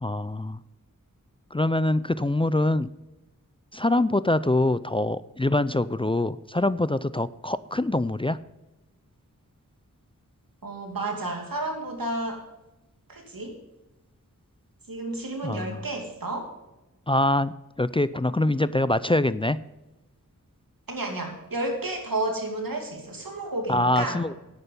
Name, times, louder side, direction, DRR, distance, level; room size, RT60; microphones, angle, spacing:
voice 1, 0.0-0.6 1.5-2.9 3.7-8.4 15.4-15.8 17.1-17.5 17.8-19.6 23.7-24.3, left 1 dB, 15° left, 16 dB, 0.4 m, -24 dB
voice 2, 10.6-12.4 13.1-13.6 14.9-16.5 20.9-24.3, right 2 dB, 90° right, 2 dB, 2.6 m, -31 dB
10.5 x 8.9 x 5.5 m, 1.0 s
wide cardioid pair, 50°, 33 cm